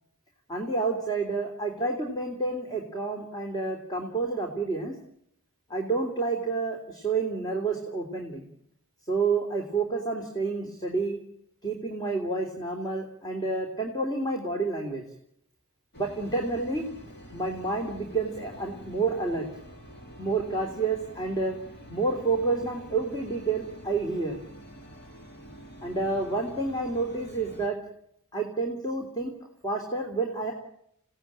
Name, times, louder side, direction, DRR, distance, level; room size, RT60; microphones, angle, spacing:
voice 1, 0.5-4.9 5.7-8.5 9.1-11.2 11.6-15.0 16.0-16.8 17.3-19.5 20.2-21.6 21.9-24.4 25.8-27.8 28.3-29.3 29.6-30.5, right 3 dB, 20° left, 2 dB, 3.3 m, -29 dB
sound 1, 15.9-27.7, equal, 50° left, 3.6 m, -47 dB
28.5 x 17.5 x 8.9 m, 0.74 s
head